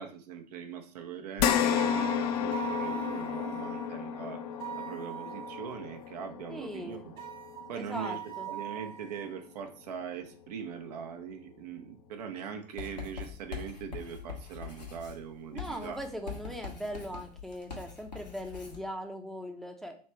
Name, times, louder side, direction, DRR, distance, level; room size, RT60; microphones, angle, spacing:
voice 1, 0.0-4.4 4.8-7.2 7.7-16.0 16.4-16.5, right 7 dB, 70° right, 5 dB, 0.7 m, -41 dB
sound 1, 1.4-10.0 10.4-10.5 12.0-12.1, left 9 dB, 65° left, 0.5 m, -33 dB
sound 2, 1.8-3.9 4.6-5.9 7.2-9.3, right 12 dB, 50° right, 1.2 m, -41 dB
voice 2, 6.5-7.1 7.7-8.5 15.5-20.0, equal, ahead, 4 dB, 0.6 m, -40 dB
Writing, 12.8-18.8, left 6 dB, 90° left, 1.2 m, -43 dB
3.3 x 3.2 x 4.3 m, 0.42 s
figure-of-eight pair, 80°, 21 cm